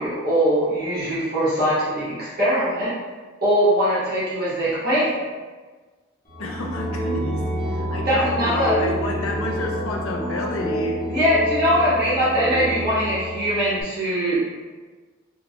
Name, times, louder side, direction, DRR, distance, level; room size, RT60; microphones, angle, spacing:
voice 1, 0.0-2.9 3.4-5.1 8.0-8.8 11.1-14.5, equal, 45° right, -11 dB, 1.4 m, -21 dB
voice 2, 0.9-1.3 6.4-11.0, left 2 dB, 75° left, 0 dB, 0.5 m, -31 dB
sound 1, 6.3-13.8, equal, 15° left, 1.0 m, -28 dB
4.0 x 2.3 x 3.0 m, 1.4 s
head